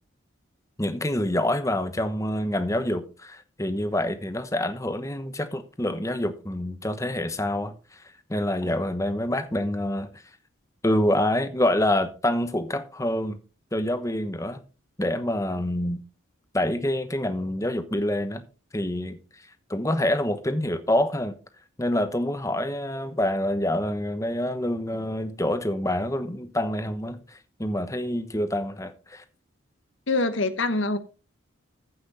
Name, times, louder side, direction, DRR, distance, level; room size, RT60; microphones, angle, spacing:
voice 1, 0.8-8.0 8.3-10.2 10.8-13.4 13.7-14.6 15.0-16.0 16.5-18.4 18.7-19.2 19.7-21.4 21.8-29.2, left 1 dB, 15° left, 1.0 m, -26 dB
voice 2, 30.1-31.0, left 2 dB, 65° left, 1.2 m, -24 dB
14.5 x 6.1 x 4.2 m
head